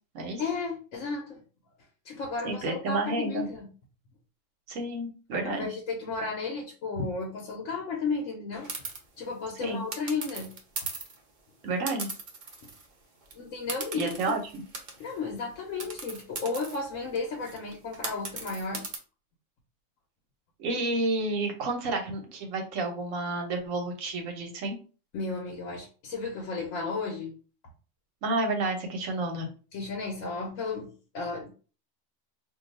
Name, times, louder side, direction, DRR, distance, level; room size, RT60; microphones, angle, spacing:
voice 1, 0.2-1.4 2.0-3.7 5.4-8.7 9.2-10.5 12.6-12.7 13.3-14.3 15.0-18.8 25.1-27.4 29.7-31.5, left 4 dB, 90° left, -1 dB, 1.1 m, -34 dB
voice 2, 2.4-3.5 4.7-5.7 9.6-9.9 11.6-12.1 13.9-14.6 20.6-24.8 28.2-29.5, right 2 dB, 85° right, 3 dB, 1.2 m, -30 dB
sound 1, 8.6-9.0 9.9-11.2 11.9-12.9 13.2-13.3 13.7-15.2 15.8-19.0, right 4 dB, 45° right, 0.8 m, -38 dB
2.6 x 2.3 x 4.0 m, 0.37 s
omnidirectional pair, 1.3 m